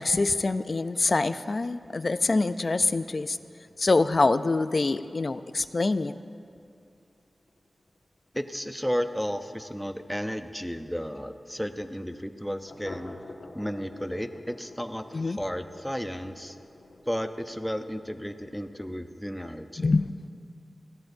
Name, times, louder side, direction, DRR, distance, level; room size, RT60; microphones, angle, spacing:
voice 1, 0.0-3.4 3.8-6.1 15.1-15.4 19.8-20.1, left 3 dB, 50° left, 13 dB, 0.4 m, -25 dB
sound 1, 0.9-10.2 10.5-10.6 10.9-11.0 11.4-11.5 12.6-19.4, left 2 dB, 65° left, 1.5 m, -51 dB
voice 2, 8.3-13.2 13.5-16.6 17.1-19.9, equal, ahead, 8 dB, 0.6 m, -33 dB
20.0 x 15.0 x 2.6 m, 2.5 s
wide cardioid pair, 80°, 0 cm